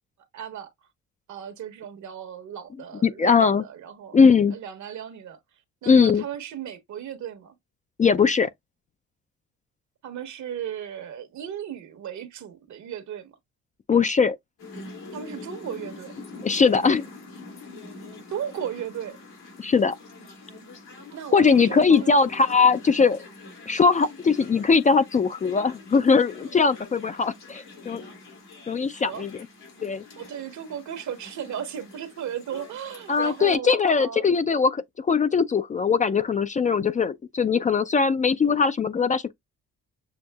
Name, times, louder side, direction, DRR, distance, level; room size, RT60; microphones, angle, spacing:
voice 1, 0.3-0.7 1.3-4.2 4.5-5.4 5.8-7.5 10.0-13.3 15.1-16.2 18.3-19.2 21.1-22.2 28.8-29.3 30.2-34.3, right 9 dB, 70° right, 1.1 m, -36 dB
voice 2, 3.0-3.6 4.1-4.5 5.9-6.2 8.0-8.5 13.9-14.4 16.4-17.1 19.6-20.0 21.3-23.2 23.7-28.0 28.7-29.5 29.8-30.0 33.1-39.3, left 5 dB, 25° left, 0.3 m, -20 dB
sound 1, 14.6-33.6, left 3 dB, 90° left, 2.8 m, -44 dB
7.0 x 2.6 x 2.2 m
cardioid pair, 90°, 30 cm